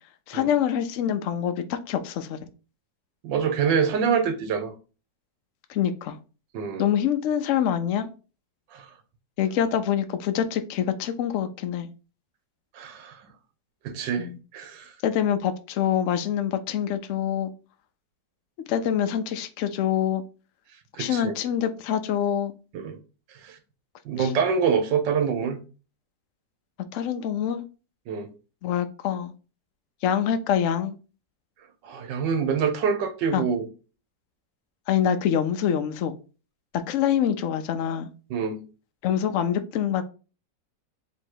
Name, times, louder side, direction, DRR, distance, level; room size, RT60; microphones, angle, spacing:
voice 1, 0.3-2.4 5.7-6.2 6.8-8.1 9.4-11.9 14.2-14.4 15.0-17.5 18.7-20.2 21.0-22.5 24.2-24.3 26.9-27.7 28.6-29.3 30.0-31.0 33.3-33.4 34.9-36.1 36.9-38.1 39.0-40.0, left 9 dB, 80° left, 0.6 m, -25 dB
voice 2, 3.2-4.7 6.5-6.9 8.7-8.9 12.7-13.2 13.8-14.9 20.9-21.3 22.7-23.0 23.3-23.6 24.0-25.6 28.1-28.3 31.8-33.7 38.3-38.6, right 6 dB, 85° right, 1.5 m, -26 dB
3.6 x 3.0 x 4.5 m
omnidirectional pair, 1.9 m